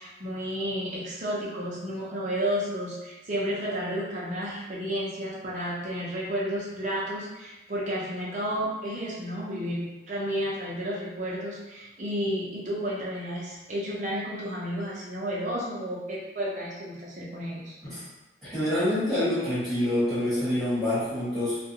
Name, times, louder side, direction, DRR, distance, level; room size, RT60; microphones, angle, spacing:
voice 1, 0.0-17.8, equal, 40° right, -6 dB, 0.6 m, -32 dB
voice 2, 18.4-21.6, left 1 dB, ahead, -13 dB, 1.1 m, -26 dB
2.4 x 2.2 x 2.7 m, 1.1 s
head